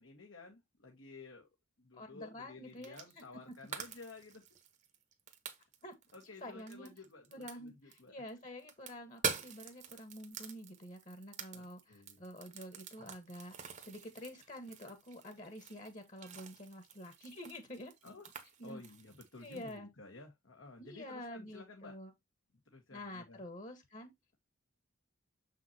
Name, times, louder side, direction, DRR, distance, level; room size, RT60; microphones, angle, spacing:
voice 1, 0.0-1.5 1.8-4.4 6.1-8.1 11.5-12.2 18.0-18.2 18.6-22.0 22.6-23.4, left 3 dB, 75° left, 1.5 m, -53 dB
voice 2, 1.9-3.2 5.8-5.9 6.4-6.9 7.3-17.9 18.6-18.8 19.4-19.9 20.8-22.1 22.9-24.1, left 1 dB, 35° left, 1.4 m, -48 dB
sound 1, 2.8-3.3 3.5-8.0 8.3-19.8, right 6 dB, 35° right, 1.0 m, -46 dB
7.0 x 5.9 x 2.8 m
head